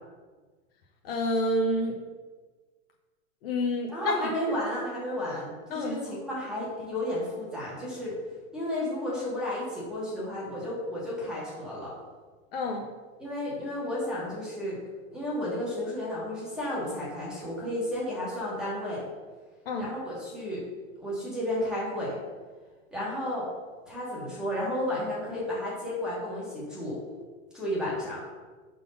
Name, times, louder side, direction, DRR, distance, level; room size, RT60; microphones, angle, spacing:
voice 1, 1.0-2.0 3.4-4.2 5.7-6.1 12.5-12.9 19.7-19.9, left 1 dB, 45° left, 0 dB, 0.7 m, -28 dB
voice 2, 3.9-8.2 8.5-11.9 13.2-14.8 15.1-19.0 19.8-20.6 21.0-22.2 22.9-23.5 23.9-27.0 27.5-28.2, left 1 dB, ahead, -7 dB, 1.1 m, -32 dB
5.2 x 3.9 x 5.2 m, 1.4 s
supercardioid pair, 165°, 41 cm